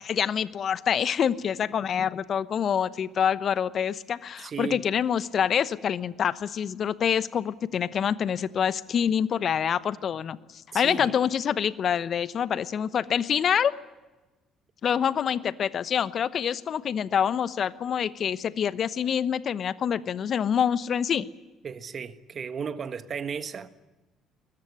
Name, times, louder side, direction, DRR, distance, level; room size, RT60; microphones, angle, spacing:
voice 1, 0.0-13.7 14.8-21.3, left 8 dB, 50° left, 0.9 m, -26 dB
voice 2, 4.4-4.8 10.7-11.2 21.6-23.7, right 6 dB, 45° right, 1.5 m, -35 dB
21.5 x 21.5 x 9.8 m
hypercardioid pair, 55°, 0 cm